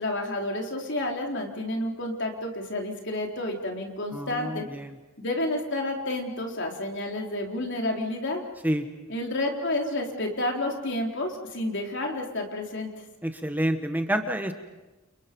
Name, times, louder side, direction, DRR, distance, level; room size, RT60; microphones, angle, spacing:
voice 1, 0.0-4.6 5.2-8.4 9.1-12.9, left 1 dB, 60° left, 1 dB, 3.9 m, -30 dB
voice 2, 4.1-5.0 8.6-8.9 13.2-14.5, equal, 10° right, 6 dB, 1.4 m, -28 dB
29.5 x 29.0 x 5.4 m, 1.1 s
head